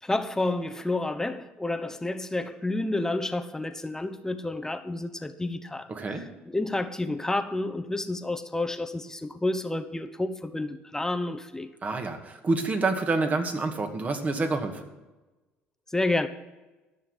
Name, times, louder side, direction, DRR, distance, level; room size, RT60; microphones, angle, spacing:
voice 1, 0.0-11.7 15.9-16.3, left 2 dB, 10° left, 1.1 m, -30 dB
voice 2, 5.9-6.3 11.8-14.9, right 3 dB, 35° right, 2.3 m, -28 dB
14.0 x 6.5 x 9.1 m
hypercardioid pair, 70°, 5 cm